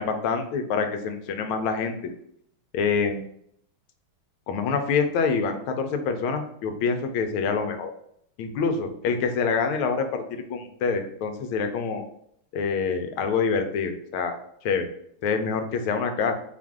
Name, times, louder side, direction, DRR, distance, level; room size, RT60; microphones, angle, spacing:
voice 1, 0.0-2.0 2.7-3.2 4.5-7.9 8.4-12.0 12.5-14.4 14.6-14.9 15.2-16.4, left 5 dB, 85° left, 6 dB, 1.5 m, -26 dB
4.5 x 2.5 x 3.6 m, 0.69 s
omnidirectional pair, 2.3 m